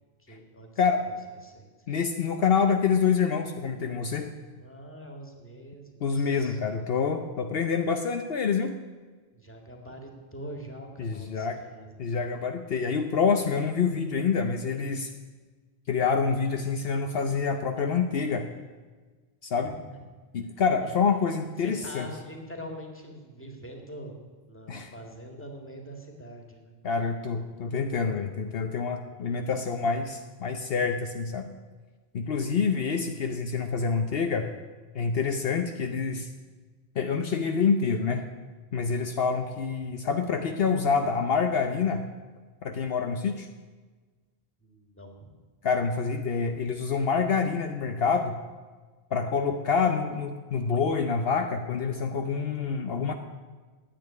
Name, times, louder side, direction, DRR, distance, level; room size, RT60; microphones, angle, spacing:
voice 1, 0.2-1.1 1.4-1.7 4.6-6.6 9.3-12.4 19.9-20.0 20.8-20.9 21.6-24.2 24.5-26.8 44.6-45.3, equal, 10° left, 2 dB, 2.0 m, -44 dB
voice 2, 1.9-4.3 6.0-8.7 11.0-11.6 12.0-15.1 15.9-18.5 19.4-19.7 20.3-22.1 24.7-24.9 26.8-31.5 32.1-34.5 34.9-36.3 37.0-38.2 38.7-42.1 42.6-43.5 45.6-48.4 49.1-53.1, left 5 dB, 70° left, 5 dB, 1.0 m, -27 dB
10.0 x 8.8 x 9.7 m, 1.4 s
omnidirectional pair, 1.1 m